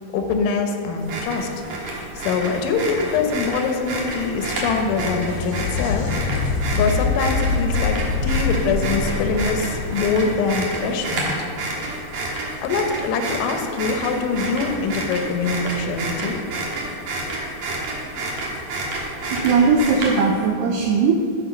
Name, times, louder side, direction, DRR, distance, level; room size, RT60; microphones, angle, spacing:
voice 1, 0.1-1.5 2.2-6.1 6.7-8.0 8.2-11.3 12.6-16.4, left 4 dB, 90° left, 5 dB, 3.4 m, -23 dB
sound 1, 1.0-20.4, right 2 dB, 65° right, 1.8 m, -29 dB
sound 2, 4.0-11.6 15.0-15.1 16.1-16.2, left 4 dB, 70° left, 2.4 m, -26 dB
voice 2, 19.3-21.2, right 5 dB, 85° right, 2 dB, 2.3 m, -18 dB
13.0 x 5.1 x 5.1 m, 2.4 s
omnidirectional pair, 5.3 m